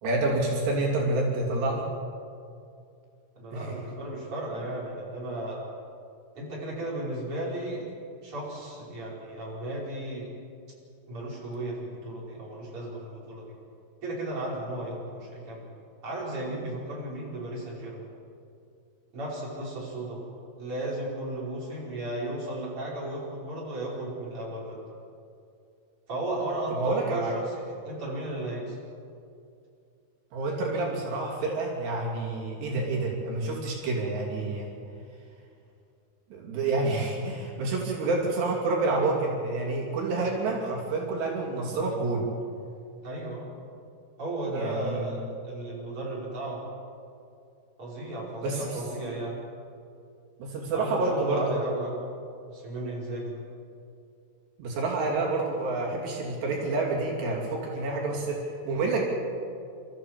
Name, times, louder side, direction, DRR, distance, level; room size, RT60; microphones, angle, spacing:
voice 1, 0.0-1.9 3.5-3.7 26.8-27.3 30.3-34.7 36.3-42.2 44.5-45.1 48.4-48.8 50.4-51.6 54.6-59.0, right 2 dB, 80° right, -2 dB, 5.0 m, -28 dB
voice 2, 3.4-5.6 6.3-7.9 8.2-10.3 11.1-13.6 14.0-15.6 16.0-18.1 19.1-20.3 20.6-24.8 26.1-28.8 43.0-43.5 44.2-46.7 47.8-49.4 50.7-52.0 52.5-53.4, right 1 dB, 30° right, -5 dB, 5.8 m, -35 dB
28.5 x 14.0 x 7.6 m, 2.5 s
omnidirectional pair, 4.8 m